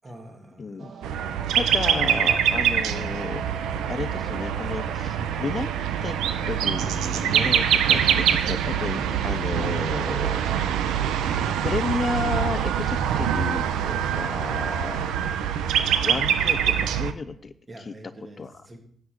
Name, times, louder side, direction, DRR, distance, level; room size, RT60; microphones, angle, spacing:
voice 1, 0.0-0.9 17.7-18.8, right 1 dB, 25° right, 2 dB, 2.9 m, -45 dB
voice 2, 0.6-0.9 1.6-3.4 3.9-5.7 6.0-6.2 6.5-10.4 11.1-11.2 11.6-15.0 16.0-17.5 17.9-18.0 18.4-18.5, left 4 dB, 35° left, 12 dB, 0.6 m, -32 dB
sound 1, 0.8-10.6, right 6 dB, 60° right, 1.3 m, -41 dB
sound 2, 1.0-17.1, right 9 dB, 85° right, 0.9 m, -24 dB
12.0 x 5.4 x 8.1 m, 0.65 s
cardioid pair, 90°, 0 cm